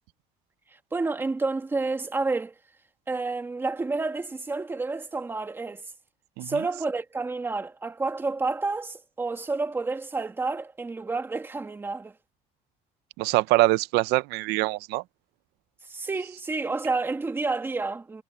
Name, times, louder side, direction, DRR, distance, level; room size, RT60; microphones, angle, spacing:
voice 1, 0.9-2.5 3.1-5.8 6.4-12.1 15.9-18.2, right 3 dB, 15° right, 1.8 m, -29 dB
voice 2, 13.2-15.0, right 20 dB, 85° right, 0.6 m, -24 dB
cardioid pair, 165°, 17 cm